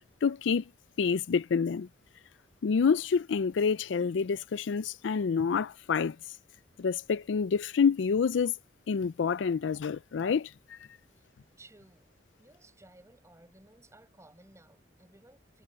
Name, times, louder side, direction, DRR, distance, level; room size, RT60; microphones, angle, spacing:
voice 1, 0.2-0.6 1.0-1.9 2.6-6.2 6.8-8.5 8.9-10.8, left 6 dB, 70° left, 0.4 m, -27 dB
voice 2, 11.6-12.1 12.4-15.6, right 1 dB, 15° right, 7.8 m, -57 dB
head